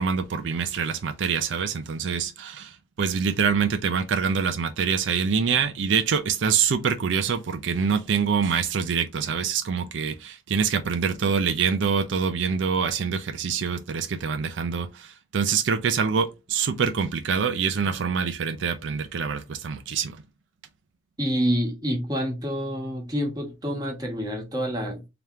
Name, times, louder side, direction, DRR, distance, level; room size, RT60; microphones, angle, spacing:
voice 1, 0.0-20.2, right 6 dB, 75° right, 0.4 m, -25 dB
voice 2, 21.2-25.1, equal, 20° right, 1.2 m, -27 dB
3.4 x 2.9 x 3.6 m
head